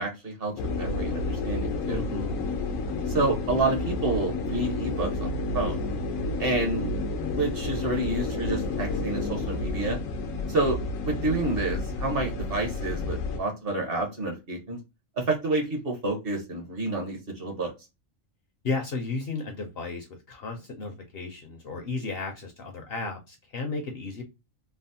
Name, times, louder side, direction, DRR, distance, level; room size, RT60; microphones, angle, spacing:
voice 1, 0.0-2.0 3.1-5.8 6.4-6.9 7.3-10.0 10.5-10.8 11.0-14.8 15.2-17.7, right 2 dB, 50° right, 2 dB, 1.0 m, -29 dB
sound 1, 0.6-13.4, left 3 dB, 85° left, 1.0 m, -30 dB
voice 2, 1.9-2.3 18.6-24.2, left 3 dB, 60° left, 4 dB, 0.7 m, -34 dB
3.3 x 2.0 x 2.6 m, 0.25 s
omnidirectional pair, 1.4 m